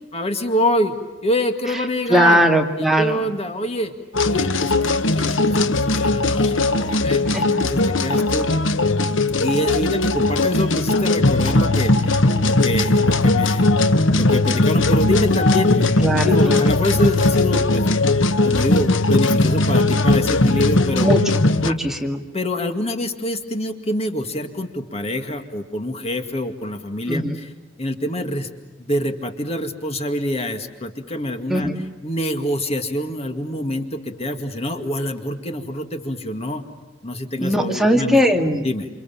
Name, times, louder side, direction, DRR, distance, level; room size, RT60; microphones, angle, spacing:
voice 1, 0.1-0.9 1.2-2.4 2.8-3.9 4.2-8.5 9.4-13.7 14.1-15.9 16.2-17.9 18.4-21.1 21.7-21.8 22.3-27.5 27.8-28.5 28.8-31.7 32.0-36.6 37.0-38.2 38.6-38.9, left 1 dB, 35° left, 6 dB, 2.2 m, -26 dB
voice 2, 2.1-3.3 7.3-7.4 16.0-16.6 21.0-21.2 21.6-22.2 27.1-27.4 31.5-31.8 37.4-38.6, equal, ahead, 2 dB, 2.3 m, -19 dB
sound 1, 4.1-21.7, left 2 dB, 75° left, 1.2 m, -18 dB
29.0 x 27.5 x 7.3 m, 1.1 s
head